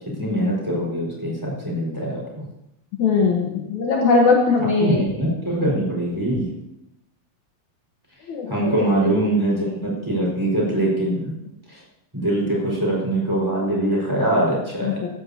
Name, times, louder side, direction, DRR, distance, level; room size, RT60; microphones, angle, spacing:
voice 1, 0.2-2.4 4.6-6.5 8.5-11.4 11.7-11.8 12.1-15.0, right 1 dB, 5° right, -4 dB, 4.7 m, -23 dB
voice 2, 3.0-5.0 8.3-8.7 14.8-15.1, left 4 dB, 65° left, -1 dB, 2.4 m, -19 dB
15.0 x 14.0 x 2.8 m, 0.84 s
omnidirectional pair, 4.0 m